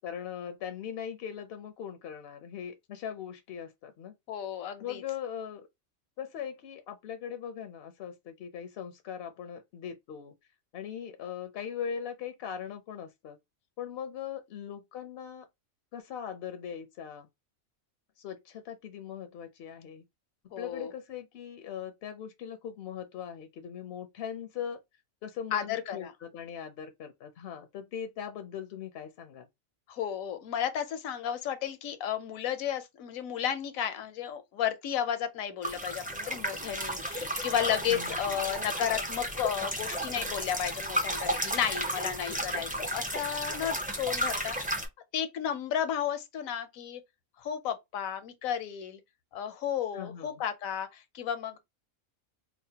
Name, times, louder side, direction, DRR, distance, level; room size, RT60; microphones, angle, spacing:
voice 1, 0.0-4.1 4.8-5.7 6.2-10.3 10.7-13.4 13.8-15.5 15.9-17.3 18.2-20.0 20.6-24.8 25.2-29.5 37.9-38.2 49.9-50.4, left 8 dB, 65° left, 0.6 m, -40 dB
voice 2, 4.3-5.0 20.5-20.9 25.5-26.1 29.9-44.8 45.1-47.0 47.4-49.0 49.3-51.6, left 9 dB, 85° left, 1.1 m, -33 dB
sound 1, 35.6-44.9, equal, 15° right, 0.3 m, -33 dB
4.9 x 2.1 x 2.7 m
omnidirectional pair, 1.4 m